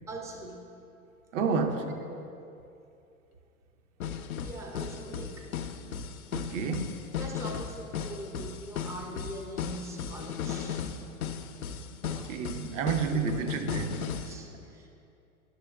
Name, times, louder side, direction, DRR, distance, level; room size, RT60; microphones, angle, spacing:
voice 1, 0.1-0.7 1.5-1.7 2.0-2.2 4.4-5.5 7.2-10.9 12.1-12.4 12.8-13.5 13.7-13.8 14.2-14.9, right 1 dB, 5° right, 2 dB, 0.4 m, -42 dB
voice 2, 1.3-2.0 6.3-7.0 12.0-14.0, right 5 dB, 60° right, 6 dB, 0.8 m, -30 dB
sound 1, 1.7-1.8 4.0-14.3, left 7 dB, 80° left, 0.6 m, -36 dB
11.0 x 6.2 x 2.3 m, 2.7 s
figure-of-eight pair, 95°, 43 cm